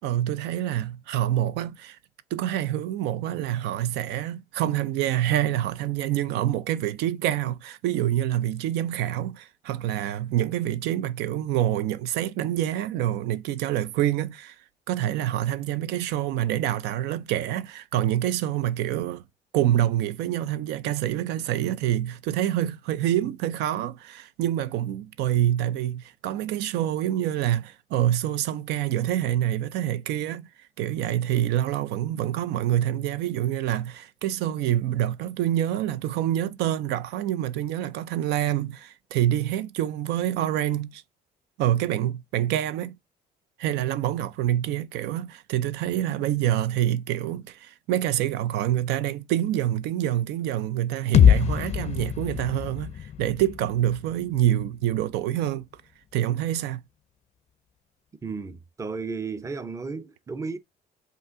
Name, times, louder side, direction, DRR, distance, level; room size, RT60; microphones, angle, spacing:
voice 1, 0.0-2.0 2.3-14.6 14.9-19.2 19.5-30.5 30.8-41.0 41.6-43.0 43.6-55.6 56.1-56.8, right 12 dB, 85° right, 0.4 m, -26 dB
sound 1, 51.1-55.0, left 9 dB, 40° left, 0.4 m, -23 dB
voice 2, 58.2-60.6, right 4 dB, 20° right, 0.5 m, -33 dB
5.3 x 2.5 x 3.6 m
cardioid pair, 110°, 17 cm